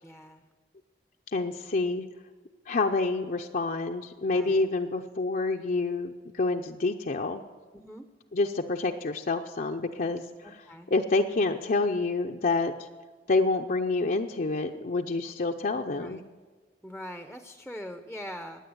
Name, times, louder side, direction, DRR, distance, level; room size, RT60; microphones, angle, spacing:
voice 1, 0.0-0.4 4.3-4.7 7.7-8.0 10.7-10.9 16.0-16.2 16.8-18.7, equal, ahead, 7 dB, 0.7 m, -42 dB
voice 2, 1.3-2.0 2.7-7.4 8.3-10.6 10.9-12.9 13.3-16.2, left 3 dB, 50° left, 2 dB, 0.6 m, -28 dB
16.0 x 10.0 x 8.0 m, 1.4 s
head